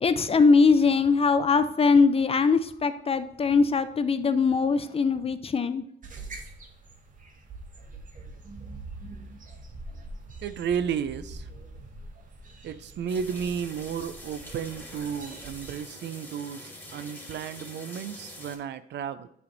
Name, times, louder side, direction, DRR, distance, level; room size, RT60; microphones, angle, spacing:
voice 1, 0.0-5.8, left 4 dB, 30° left, 12 dB, 0.5 m, -21 dB
sound 1, 6.0-15.8, right 2 dB, 40° right, 1.2 m, -44 dB
voice 2, 10.4-11.5 12.6-19.3, right 7 dB, 65° right, 13 dB, 0.5 m, -33 dB
sound 2, 13.1-18.6, left 1 dB, 10° left, 1.4 m, -45 dB
8.6 x 3.5 x 3.9 m, 0.74 s
cardioid pair, 90°, 20 cm